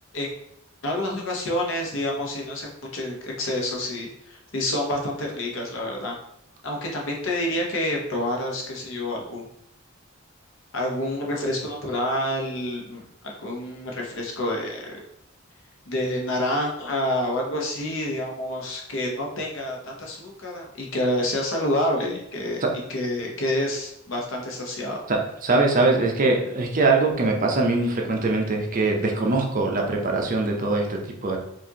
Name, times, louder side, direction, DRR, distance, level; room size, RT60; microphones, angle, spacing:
voice 1, 0.8-6.1 6.6-9.4 10.7-15.0 15.9-22.6 22.9-25.0, left 1 dB, 65° left, -1 dB, 0.9 m, -28 dB
voice 2, 25.1-31.4, right 3 dB, 40° right, 1 dB, 0.6 m, -22 dB
4.5 x 2.6 x 2.8 m, 0.74 s
head